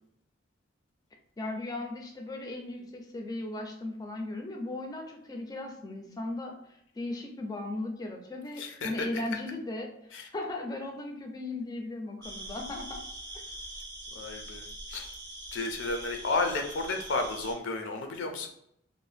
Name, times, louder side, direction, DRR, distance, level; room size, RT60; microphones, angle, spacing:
voice 1, 1.4-6.5 7.0-9.9 10.3-13.0, left 2 dB, 20° left, 3 dB, 0.4 m, -37 dB
voice 2, 8.6-9.1 10.1-10.3 14.2-15.1 15.5-18.5, left 3 dB, 80° left, 4 dB, 0.5 m, -32 dB
sound 1, 12.2-17.6, right 1 dB, 20° right, 0.6 m, -43 dB
2.7 x 2.1 x 3.3 m, 0.73 s
head